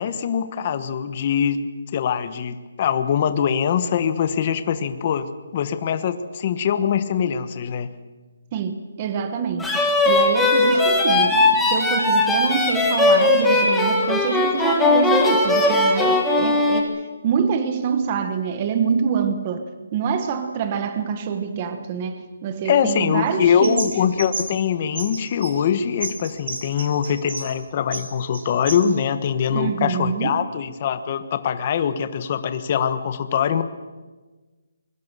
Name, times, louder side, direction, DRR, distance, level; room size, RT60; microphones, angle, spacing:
voice 1, 0.0-1.6 1.9-7.9 22.6-33.6, left 8 dB, 25° left, 11 dB, 1.2 m, -23 dB
voice 2, 8.5-19.7 19.9-23.9 29.5-30.4, right 6 dB, 20° right, 9 dB, 1.2 m, -25 dB
sound 1, 9.6-16.8, left 2 dB, 5° left, 1.8 m, -18 dB
sound 2, 23.3-24.6 24.9-27.5 27.8-28.9, right 3 dB, 55° right, 3.6 m, -32 dB
25.0 x 22.5 x 6.8 m, 1.3 s
hypercardioid pair, 175°, 0 cm